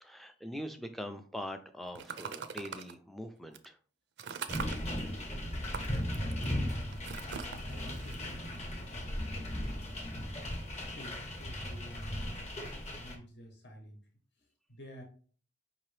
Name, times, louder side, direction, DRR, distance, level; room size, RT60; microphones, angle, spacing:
voice 1, 0.0-3.8, equal, ahead, 7 dB, 0.3 m, -42 dB
sound 1, 1.9-2.9 3.5-3.7 4.2-4.8 5.6-9.1, right 6 dB, 65° right, 0.4 m, -42 dB
sound 2, 4.5-13.2, equal, 35° left, 0.8 m, -37 dB
voice 2, 6.3-10.3 10.7-14.0 14.4-15.0, equal, 65° left, 2 dB, 0.9 m, -52 dB
5.2 x 2.8 x 3.2 m, 0.42 s
head